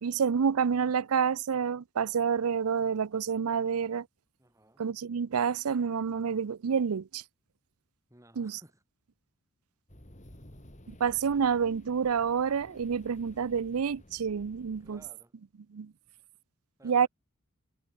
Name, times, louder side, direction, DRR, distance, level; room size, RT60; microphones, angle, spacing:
voice 1, 0.0-4.1 4.8-7.2 8.4-8.6 10.9-15.0 15.7-15.9 16.8-17.1, right 6 dB, 80° right, 0.5 m, -28 dB
voice 2, 4.4-4.8 8.1-8.8 14.7-15.4 16.8-17.1, right 1 dB, 15° right, 5.7 m, -58 dB
sound 1, 9.9-15.1, equal, 35° left, 5.1 m, -54 dB
head